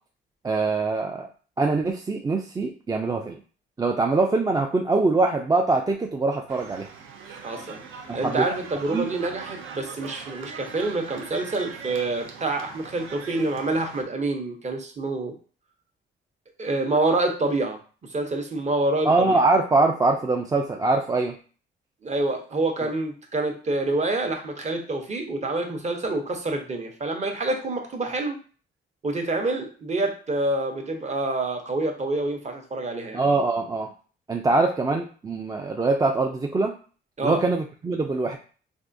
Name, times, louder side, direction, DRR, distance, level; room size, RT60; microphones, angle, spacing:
voice 1, 0.4-1.3 1.6-3.4 3.8-6.9 7.3-7.4 8.1-8.5 8.9-9.1 19.1-21.3 33.1-33.9 34.3-36.7 37.2-38.4, right 3 dB, 20° right, 2 dB, 0.3 m, -23 dB
sound 1, 6.5-14.0, right 5 dB, 80° right, 0.6 m, -41 dB
voice 2, 7.4-7.8 8.1-15.3 16.6-17.8 18.1-19.4 22.0-28.4 29.0-33.2 37.2-37.4, right 2 dB, 35° right, 3 dB, 0.8 m, -27 dB
3.5 x 2.5 x 2.6 m, 0.39 s
cardioid pair, 90°, 20 cm